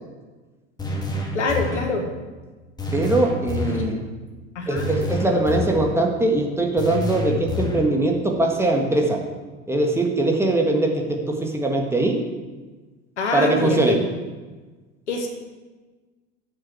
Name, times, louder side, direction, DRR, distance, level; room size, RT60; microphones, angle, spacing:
sound 1, 0.8-2.0 2.8-4.0 4.8-6.0 6.8-8.0, left 3 dB, 10° left, 1.9 m, -28 dB
voice 1, 1.3-2.1 3.7-3.8 4.6-4.9 13.2-14.0 15.1-15.3, left 3 dB, 75° left, 3 dB, 1.7 m, -25 dB
voice 2, 2.9-4.0 4.7-9.2 9.7-12.2 13.3-14.0, right 2 dB, 5° right, 0 dB, 1.8 m, -21 dB
7.5 x 6.5 x 7.6 m, 1.3 s
figure-of-eight pair, 80°, 35 cm